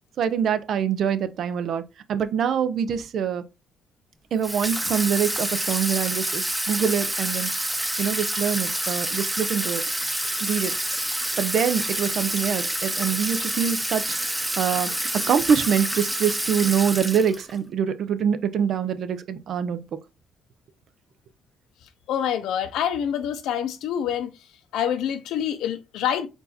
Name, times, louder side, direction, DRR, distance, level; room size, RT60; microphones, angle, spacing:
voice 1, 0.2-1.8 2.1-3.4 4.3-7.5 8.0-9.8 10.4-10.7 11.4-19.8, right 8 dB, 65° right, 0.6 m, -25 dB
Water tap faucet / Sink (filling or washing), 4.4-17.6, right 1 dB, 5° right, 0.6 m, -28 dB
voice 2, 22.1-24.3 24.7-26.3, left 9 dB, 90° left, 0.7 m, -26 dB
4.6 x 2.6 x 4.1 m
cardioid pair, 90°, 0 cm